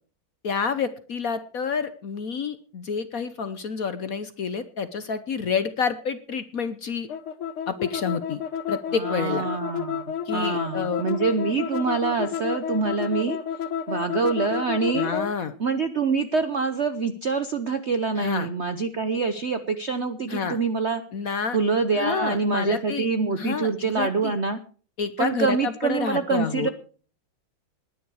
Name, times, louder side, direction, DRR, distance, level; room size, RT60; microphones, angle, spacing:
voice 1, 0.4-7.1 7.7-8.4 8.7-9.5 10.2-11.0 14.9-15.5 18.2-18.5 20.3-20.6 21.1-21.6 22.0-23.1 23.4-24.4 25.0-26.7, left 6 dB, 55° left, 12 dB, 1.1 m, -29 dB
sound 1, 7.1-15.3, left 8 dB, 90° left, 1.9 m, -30 dB
voice 2, 9.0-13.4 13.9-15.1 15.6-21.0 21.5-24.6 25.2-26.7, right 4 dB, 55° right, 10 dB, 0.7 m, -25 dB
19.5 x 10.0 x 4.8 m, 0.41 s
omnidirectional pair, 2.3 m